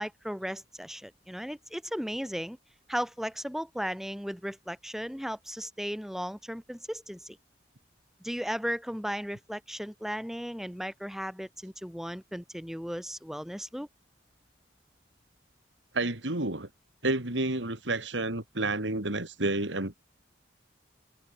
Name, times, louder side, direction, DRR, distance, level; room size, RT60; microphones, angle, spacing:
voice 1, 0.0-2.6 2.9-7.4 8.2-13.9, equal, ahead, 4.5 m, -36 dB
voice 2, 15.9-16.7 17.0-20.0, right 2 dB, 80° right, 3.3 m, -30 dB
head